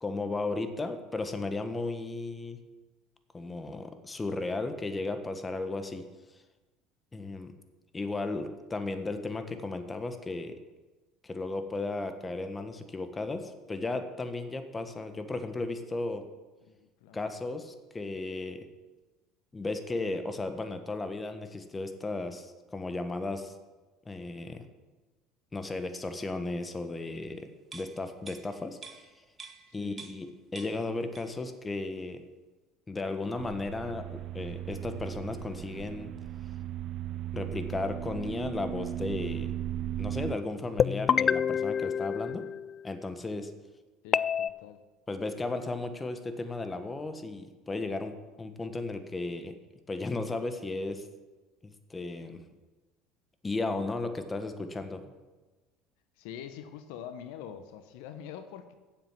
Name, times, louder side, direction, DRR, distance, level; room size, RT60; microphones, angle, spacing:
voice 1, 0.0-2.6 3.3-6.0 7.1-7.5 7.9-10.6 11.2-16.2 17.1-18.6 19.5-23.5 24.0-24.7 25.5-29.1 29.7-32.2 32.9-36.1 37.3-39.5 40.0-42.4 42.8-43.5 45.1-49.5 49.9-51.1 51.6-52.5 53.4-55.0, left 3 dB, 20° left, 8 dB, 1.3 m, -35 dB
voice 2, 16.7-17.2 29.7-30.1 44.0-44.8 56.2-58.7, left 9 dB, 70° left, 9 dB, 0.8 m, -45 dB
sound 1, 27.6-30.3 30.5-31.5 31.8-32.0, right 5 dB, 30° right, 1.8 m, -48 dB
sound 2, 33.4-40.4, right 12 dB, 55° right, 0.4 m, -37 dB
sound 3, 40.8-42.9 44.1-44.5, left 8 dB, 40° left, 0.3 m, -27 dB
8.8 x 7.6 x 7.5 m, 1.2 s
hypercardioid pair, 75°, 0 cm